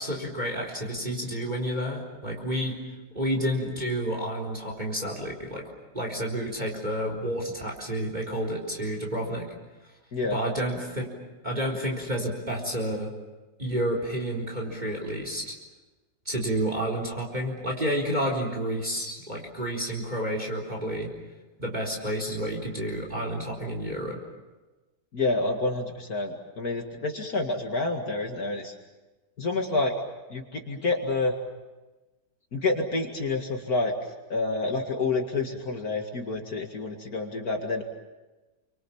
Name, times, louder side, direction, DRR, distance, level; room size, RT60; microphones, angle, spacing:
voice 1, 0.0-2.8 3.1-5.6 5.9-9.5 10.3-11.1 11.4-13.1 13.6-15.5 16.3-21.1 21.6-24.2, equal, 25° right, 0 dB, 4.3 m, -30 dB
voice 2, 25.1-28.7 29.4-29.9 30.3-31.3 32.5-37.8, left 3 dB, 55° left, 2 dB, 2.6 m, -28 dB
30.0 x 25.0 x 7.2 m, 1.2 s
omnidirectional pair, 1.9 m